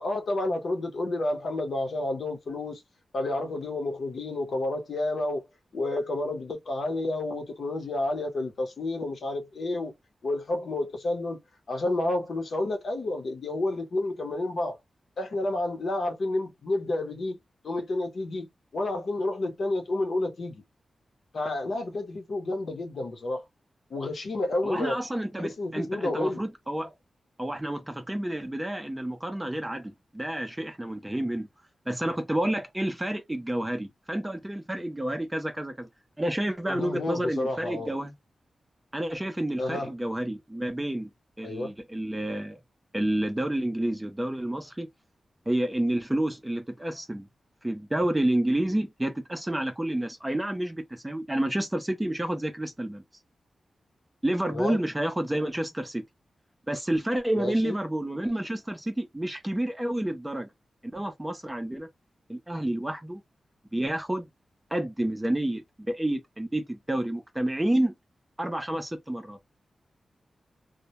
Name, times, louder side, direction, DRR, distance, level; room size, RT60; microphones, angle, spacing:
voice 1, 0.0-2.8 3.1-5.5 5.7-9.9 10.2-11.4 11.7-14.7 15.2-17.4 17.6-20.6 21.3-23.4 23.9-25.0 25.4-26.4 36.7-37.9 39.6-39.9 41.4-41.7 54.5-54.8 57.4-57.7, left 2 dB, 55° left, 0.7 m, -30 dB
voice 2, 24.6-26.9 27.4-31.5 31.9-35.9 36.2-38.1 38.9-41.1 41.4-42.6 42.9-44.9 45.5-47.3 47.6-53.0 54.2-56.0 56.7-60.5 60.9-61.9 62.3-63.2 63.7-64.3 64.7-67.9 68.4-69.4, right 1 dB, 10° right, 0.4 m, -29 dB
2.1 x 2.1 x 2.8 m
wide cardioid pair, 165°, 0 cm